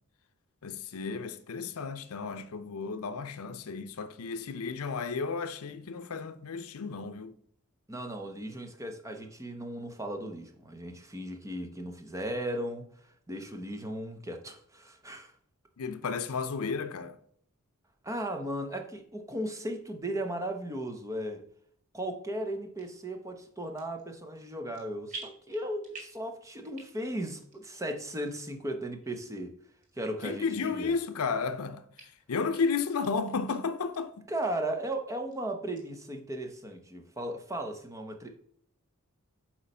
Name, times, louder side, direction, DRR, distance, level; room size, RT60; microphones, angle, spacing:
voice 1, 0.6-7.3 15.8-17.2 30.2-34.3, left 5 dB, 80° left, 0.5 m, -33 dB
voice 2, 7.9-15.3 18.0-21.4 21.9-29.5 29.9-30.9 34.3-38.4, right 1 dB, 15° right, 0.7 m, -36 dB
sound 1, 22.8-23.0 23.6-24.1 24.3-24.8 25.1-26.3 26.6-27.1 27.5-27.6 28.2-28.3 29.0-29.1 29.8-29.9 30.3-30.4 30.9-31.5 31.9-32.0 32.5-32.6 32.9-33.5 33.9-34.0 34.4-34.5 34.9-35.4 35.7-35.8, right 3 dB, 35° right, 2.1 m, -47 dB
8.3 x 3.1 x 5.4 m
head